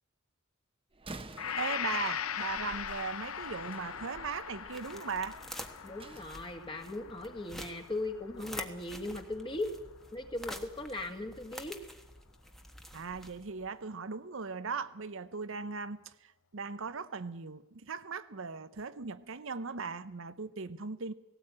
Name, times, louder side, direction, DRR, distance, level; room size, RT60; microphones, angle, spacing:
Slam, 0.9-6.3, right 2 dB, 25° right, 1.1 m, -51 dB
Gong, 1.4-9.4, left 8 dB, 70° left, 0.8 m, -40 dB
voice 1, 1.6-5.4 12.9-21.1, right 5 dB, 60° right, 0.8 m, -39 dB
sound 1, 2.7-13.7, equal, ahead, 1.2 m, -49 dB
voice 2, 5.8-9.7 10.1-11.8, left 2 dB, 20° left, 1.9 m, -38 dB
18.0 x 17.0 x 8.7 m
head